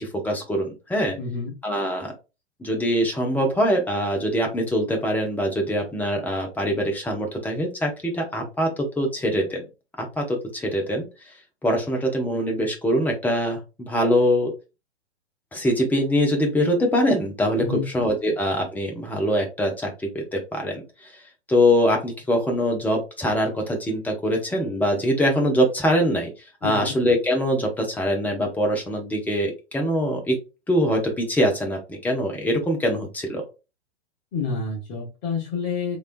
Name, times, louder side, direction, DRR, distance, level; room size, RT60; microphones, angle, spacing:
voice 1, 0.0-1.2 1.6-2.1 2.6-9.6 10.0-11.1 11.6-14.5 15.5-20.8 21.5-26.3 26.6-30.4 30.7-33.4, equal, 5° left, 1 dB, 0.8 m, -23 dB
voice 2, 1.2-1.5 17.6-17.8 26.6-26.9 34.3-36.0, left 4 dB, 40° left, -1 dB, 1.1 m, -28 dB
3.2 x 3.1 x 2.5 m, 0.29 s
figure-of-eight pair, 110°, 33 cm